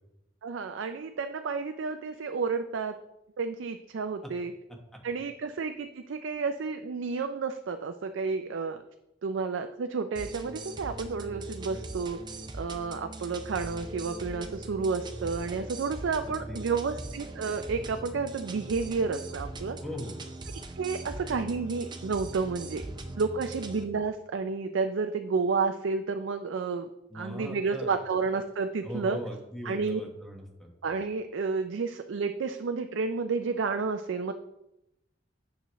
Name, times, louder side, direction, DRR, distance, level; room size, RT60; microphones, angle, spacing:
voice 1, 0.4-3.0 3.4-4.5 5.0-8.8 9.2-12.2 12.5-19.8 20.7-22.8 23.2-26.9 27.1-29.2 29.7-30.0 30.8-34.3, right 4 dB, 85° right, 8 dB, 0.4 m, -31 dB
sound 1, 10.2-23.8, right 2 dB, 25° right, 0.6 m, -41 dB
voice 2, 16.2-16.7 19.8-20.2 22.9-23.2 27.1-27.9 28.8-30.7, equal, ahead, 0 dB, 1.3 m, -40 dB
9.1 x 6.1 x 3.1 m, 0.89 s
head